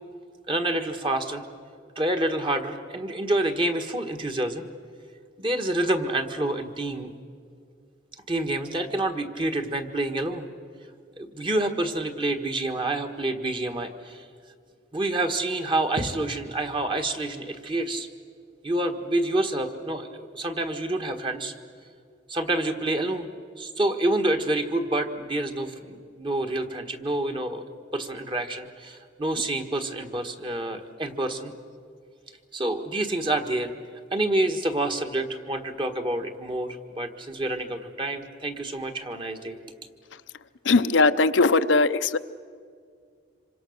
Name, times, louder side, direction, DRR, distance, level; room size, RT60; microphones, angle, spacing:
voice 1, 0.5-1.4 1.9-4.6 5.4-7.1 8.3-10.5 11.2-14.2 14.9-18.1 18.6-21.5 22.3-23.3 23.6-27.6 27.9-31.5 32.5-33.7 34.1-39.6, right 1 dB, 25° right, 6 dB, 1.5 m, -28 dB
voice 2, 40.6-42.2, left 3 dB, 75° left, 10 dB, 0.7 m, -19 dB
26.5 x 25.0 x 6.6 m, 2.2 s
head